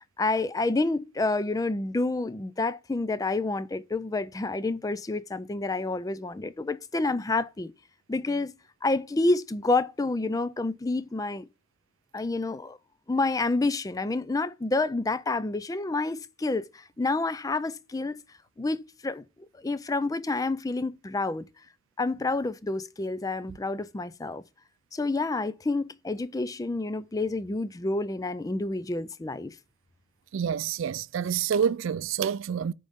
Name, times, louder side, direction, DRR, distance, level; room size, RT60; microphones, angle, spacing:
voice 1, 0.2-7.7 8.1-8.5 8.8-11.5 12.1-12.8 13.1-18.2 18.6-19.2 19.6-21.5 22.0-24.4 24.9-29.6, left 2 dB, 20° left, 0.4 m, -28 dB
voice 2, 30.3-32.7, right 7 dB, 75° right, 0.3 m, -27 dB
9.2 x 3.9 x 3.6 m
head